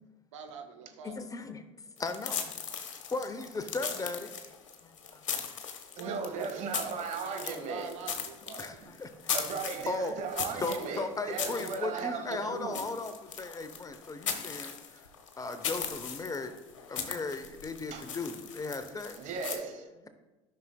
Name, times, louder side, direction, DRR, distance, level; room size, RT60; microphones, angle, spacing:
voice 1, 0.3-1.2 5.9-8.8 10.4-12.1, right 6 dB, 75° right, 6 dB, 0.8 m, -45 dB
voice 2, 1.0-1.7 2.0-2.5 3.1-4.5 4.8-5.2 8.6-9.3 9.9-10.1 10.6-15.1 15.4-16.6 16.9-19.2, left 3 dB, 20° left, 10 dB, 0.7 m, -37 dB
sound 1, 2.0-19.6, left 7 dB, 75° left, 0.9 m, -39 dB
voice 3, 6.0-7.9 8.8-8.9 9.3-12.8 17.0-17.1 17.9-18.1 19.1-20.1, right 5 dB, 50° right, 6 dB, 1.4 m, -37 dB
13.5 x 5.9 x 2.3 m, 1.1 s
figure-of-eight pair, 65°, 16 cm